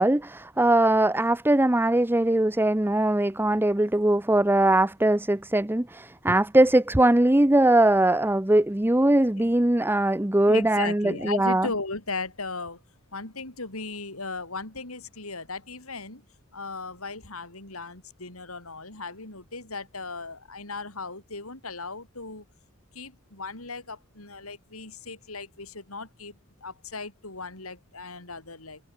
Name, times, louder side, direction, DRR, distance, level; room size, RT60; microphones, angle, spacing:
voice 1, 0.0-11.7, right 1 dB, 10° right, 0.7 m, -21 dB
voice 2, 10.5-12.8 13.1-16.2 16.5-22.4 22.9-28.8, left 3 dB, 85° left, 6.1 m, -37 dB
head